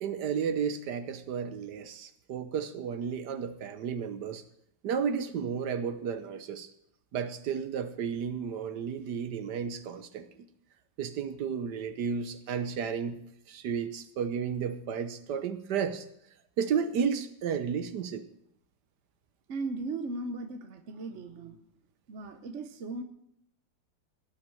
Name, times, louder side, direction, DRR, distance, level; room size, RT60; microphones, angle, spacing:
voice 1, 0.0-4.4 4.8-6.7 7.1-10.3 11.0-13.2 13.5-16.1 16.6-18.3, right 7 dB, 70° right, 11 dB, 1.4 m, -32 dB
voice 2, 19.5-21.6 22.1-23.0, right 3 dB, 50° right, 7 dB, 1.1 m, -37 dB
17.5 x 6.0 x 7.7 m, 0.74 s
omnidirectional pair, 1.9 m